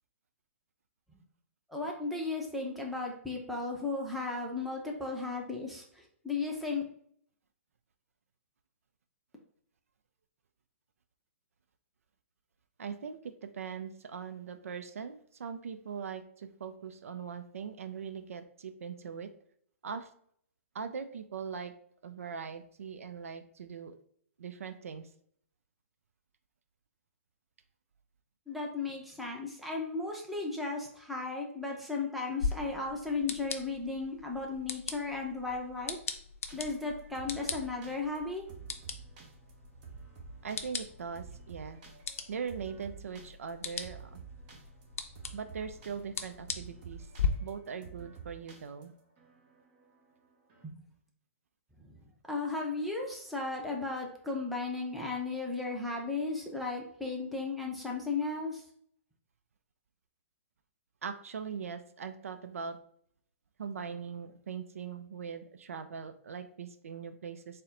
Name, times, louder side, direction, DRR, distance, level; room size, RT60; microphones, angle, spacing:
voice 1, 1.7-6.8 28.5-36.0 36.5-38.5 50.6-50.8 51.8-52.0 52.3-58.6, left 3 dB, ahead, -1 dB, 0.7 m, -35 dB
voice 2, 12.8-19.3 19.8-20.1 20.7-21.7 22.0-24.0 24.4-25.1 40.4-41.8 42.3-44.2 45.3-47.1 47.4-48.9 61.0-62.8 63.6-67.6, right 6 dB, 75° right, 9 dB, 0.4 m, -41 dB
sound 1, 32.4-47.3, left 6 dB, 70° left, 0.5 m, -40 dB
sound 2, 36.5-50.6, right 6 dB, 40° right, 1.1 m, -51 dB
4.0 x 2.1 x 3.7 m, 0.63 s
hypercardioid pair, 130°, 8 cm